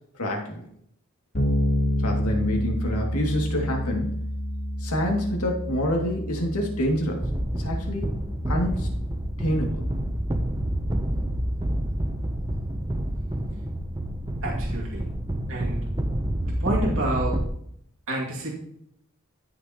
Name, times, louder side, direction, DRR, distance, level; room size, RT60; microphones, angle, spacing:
voice 1, 0.1-0.6 2.0-4.2 4.8-8.1 8.5-8.9 9.4-9.8, equal, 90° left, 0 dB, 2.4 m, -27 dB
Bass guitar, 1.3-11.0, equal, 55° left, 2.8 m, -30 dB
sound 1, 7.2-17.5, right 1 dB, 15° right, 0.7 m, -28 dB
voice 2, 14.4-15.0 15.5-15.8 16.4-17.4 18.1-18.5, right 2 dB, 65° right, -3 dB, 2.4 m, -29 dB
15.0 x 6.8 x 3.0 m, 0.71 s
head